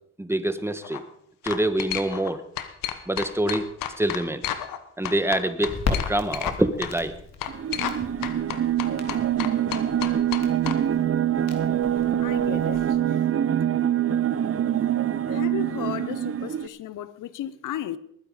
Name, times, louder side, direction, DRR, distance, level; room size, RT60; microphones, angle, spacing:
voice 1, 0.2-1.0 1.4-2.4 3.1-3.7 4.0-4.4 5.0-7.2, right 1 dB, 10° right, 1.5 m, -25 dB
sound 1, 0.7-1.0 1.5-2.3 2.6-4.8 5.0-6.6 6.8-6.9 7.4-8.0 8.2-10.8, left 11 dB, 85° left, 1.3 m, -31 dB
Crackle, 5.7-13.0, left 5 dB, 55° left, 3.0 m, -36 dB
sound 2, 7.5-16.7, right 10 dB, 45° right, 0.8 m, -24 dB
voice 2, 12.2-13.0 15.3-18.0, left 12 dB, 70° left, 0.9 m, -34 dB
20.0 x 9.7 x 5.0 m
supercardioid pair, 70°, 32 cm